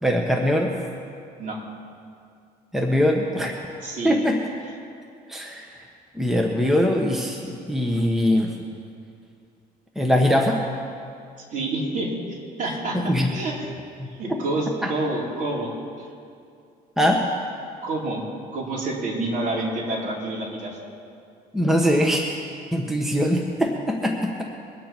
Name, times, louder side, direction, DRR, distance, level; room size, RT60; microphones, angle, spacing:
voice 1, 0.0-0.7 2.7-3.5 4.0-4.4 5.3-5.7 6.1-8.6 9.9-10.6 12.9-13.3 14.3-14.4 14.8-14.9 17.0-17.2 21.5-24.4, equal, ahead, 0 dB, 1.3 m, -22 dB
voice 2, 3.8-4.2 11.5-13.0 13.3-13.5 14.2-15.8 17.8-18.2 18.5-20.8, right 2 dB, 50° right, -4 dB, 4.1 m, -28 dB
23.0 x 9.1 x 4.5 m, 2.4 s
cardioid pair, 110°, 17 cm